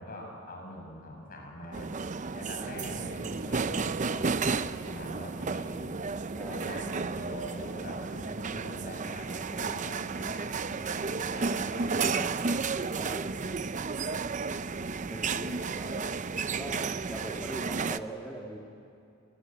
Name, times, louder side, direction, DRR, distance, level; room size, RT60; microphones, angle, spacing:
voice 1, 0.0-1.9 2.3-5.9 6.5-12.4 13.2-13.6 14.6-15.6, equal, 45° left, 1 dB, 6.9 m, -44 dB
sound 1, 1.7-18.0, right 4 dB, 35° right, 0.6 m, -32 dB
voice 2, 6.3-7.0 11.7-12.4 12.9-13.7 15.1-18.6, right 1 dB, 5° left, -3 dB, 2.1 m, -42 dB
29.0 x 21.0 x 9.2 m, 2.5 s
head